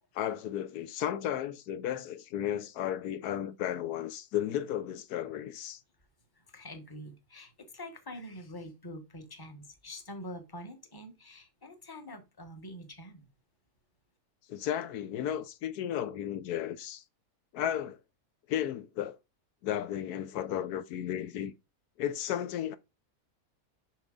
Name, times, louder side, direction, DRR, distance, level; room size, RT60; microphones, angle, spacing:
voice 1, 0.1-5.8 14.5-17.0 17.5-18.0 18.5-19.2 19.6-21.5 22.0-22.8, left 10 dB, 85° left, 1.2 m, -34 dB
voice 2, 6.3-13.3, left 1 dB, 15° left, 1.1 m, -45 dB
7.2 x 5.5 x 3.8 m
omnidirectional pair, 1.6 m